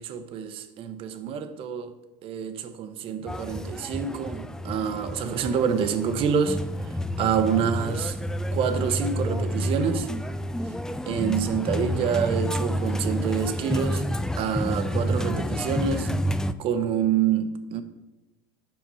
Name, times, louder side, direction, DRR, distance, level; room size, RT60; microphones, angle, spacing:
voice 1, 0.0-1.9 2.2-8.2 8.5-10.1 11.1-14.0 14.4-16.1 16.6-17.8, right 7 dB, 50° right, 0.9 m, -27 dB
sound 1, 3.3-16.5, equal, 5° left, 0.3 m, -29 dB
7.5 x 5.2 x 5.5 m
supercardioid pair, 105°, 12 cm